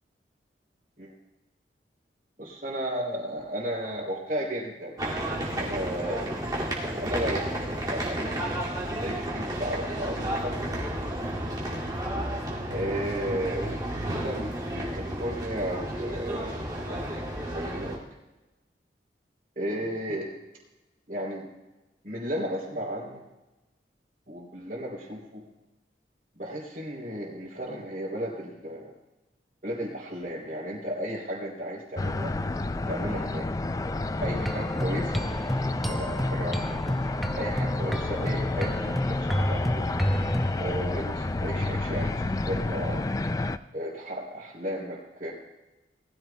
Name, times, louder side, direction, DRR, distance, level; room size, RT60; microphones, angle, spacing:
voice 1, 2.4-5.0 5.6-6.4 7.0-7.5 7.7-10.7 12.7-16.6 16.9-17.2 17.5-18.0 19.5-20.3 21.1-21.5 22.0-23.2 24.3-25.4 26.3-28.9 29.6-32.3 32.9-33.5 34.2-35.5 35.9-36.8 37.4-39.9 40.6-43.0 43.7-45.3, equal, 45° right, -7 dB, 3.2 m, -34 dB
sound 1, 5.0-18.0, right 1 dB, 20° right, 2.4 m, -32 dB
sound 2, 32.0-43.6, left 2 dB, 20° left, 0.3 m, -30 dB
sound 3, 34.2-40.6, equal, ahead, 0.7 m, -30 dB
19.5 x 14.5 x 2.3 m, 1.1 s
head